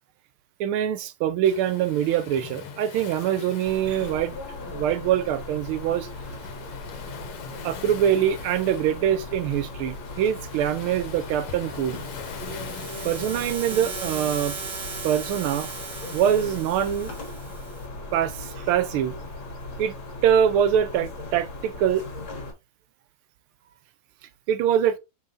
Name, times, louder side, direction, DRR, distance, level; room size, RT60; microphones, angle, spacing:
voice 1, 0.6-4.4 4.7-6.1 7.6-12.1 13.0-14.6 15.0-15.7 16.1-17.1 18.1-19.2 19.8-19.9 20.2-22.0 24.5-25.0, right 9 dB, 80° right, 1.5 m, -24 dB
Waves surf, 1.4-16.6, left 7 dB, 80° left, 1.8 m, -44 dB
sound 1, 3.6-22.5, left 2 dB, 60° left, 2.2 m, -38 dB
sound 2, 11.7-17.9, right 5 dB, 45° right, 0.9 m, -38 dB
5.6 x 3.8 x 2.5 m
omnidirectional pair, 2.4 m